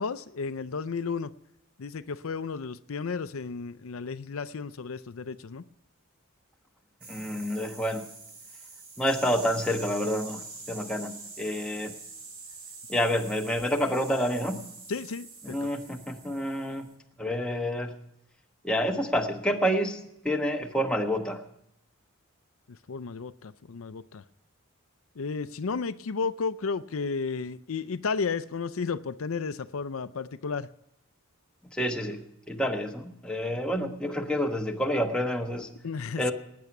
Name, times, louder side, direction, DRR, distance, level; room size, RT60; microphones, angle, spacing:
voice 1, 0.0-1.3 1.8-5.6 14.9-15.7 22.7-24.2 25.2-30.7 35.8-36.3, left 5 dB, 75° left, 13 dB, 0.5 m, -33 dB
sound 1, 7.0-16.9, right 3 dB, 80° right, 4.6 m, -45 dB
voice 2, 7.1-8.1 9.0-11.9 12.9-14.6 15.4-16.9 17.2-17.9 18.6-20.0 20.2-21.4 31.7-32.2 32.5-35.7 36.2-36.3, equal, 5° left, 2 dB, 1.2 m, -28 dB
19.0 x 9.5 x 5.9 m, 0.78 s
head